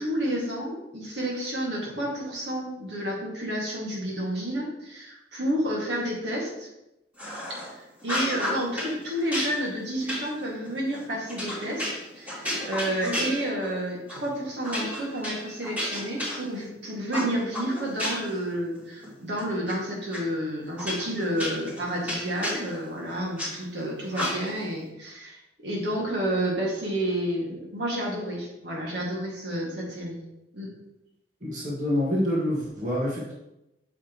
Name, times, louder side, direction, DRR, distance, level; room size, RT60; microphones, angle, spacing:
voice 1, 0.0-6.7 7.5-11.9 12.1-30.2 30.5-30.7, right 1 dB, 70° right, -3 dB, 2.2 m, -30 dB
sound 1, 7.2-7.7 8.0-8.9 9.3-13.8 14.1-14.3 14.6-16.7 17.1-18.4 18.8-19.7 20.1-20.2 20.8-23.5 24.1-24.7, equal, 10° right, 3.1 m, -32 dB
voice 2, 31.4-33.3, left 1 dB, 45° right, -5 dB, 1.8 m, -27 dB
8.6 x 6.6 x 3.1 m, 0.90 s
head